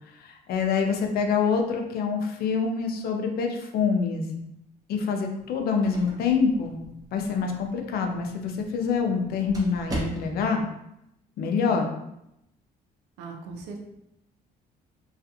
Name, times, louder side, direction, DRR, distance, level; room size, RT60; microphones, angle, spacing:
voice 1, 0.2-4.5 4.9-6.8 7.1-10.6 11.4-11.9, left 5 dB, 65° left, 3 dB, 0.5 m, -26 dB
sound 1, 5.4-10.6, right 2 dB, 20° right, 0.7 m, -40 dB
voice 2, 13.2-13.8, right 4 dB, 90° right, 2 dB, 0.5 m, -38 dB
2.4 x 2.3 x 2.7 m, 0.82 s
cardioid pair, 110°, 17 cm